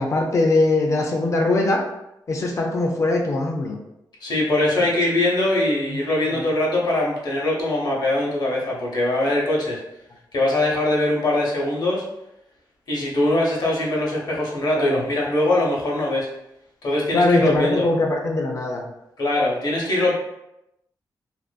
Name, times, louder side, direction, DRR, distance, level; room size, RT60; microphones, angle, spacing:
voice 1, 0.0-1.8 2.3-3.8 6.3-6.4 14.8-15.0 17.1-18.9, left 2 dB, 40° left, 2 dB, 0.3 m, -21 dB
voice 2, 4.2-9.8 10.3-12.0 12.9-16.3 16.8-17.8 19.2-20.1, left 1 dB, 60° left, -3 dB, 0.7 m, -22 dB
2.4 x 2.4 x 2.2 m, 0.86 s
wide cardioid pair, 155°, 8 cm